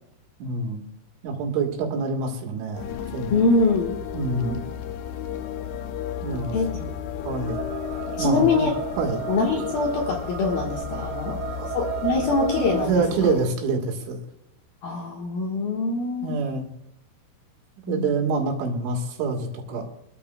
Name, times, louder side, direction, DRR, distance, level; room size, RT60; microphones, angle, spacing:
voice 1, 0.4-0.8 1.2-2.9 3.1-3.4 4.1-4.6 6.2-6.9 7.2-7.6 8.2-8.7 9.0-9.2 11.5-11.7 12.7-14.2 16.2-16.7 17.9-19.8, right 4 dB, 70° right, 1 dB, 3.9 m, -26 dB
sound 1, 2.7-13.5, left 9 dB, 85° left, 2.3 m, -33 dB
voice 2, 3.3-4.0 6.5-6.7 8.1-8.7 9.3-11.4 11.7-13.0 14.8-16.4 17.9-18.1, left 3 dB, 65° left, -1 dB, 2.5 m, -23 dB
sound 2, 7.5-12.9, right 11 dB, 90° right, 4.1 m, -34 dB
25.5 x 13.5 x 2.3 m, 0.77 s
omnidirectional pair, 5.9 m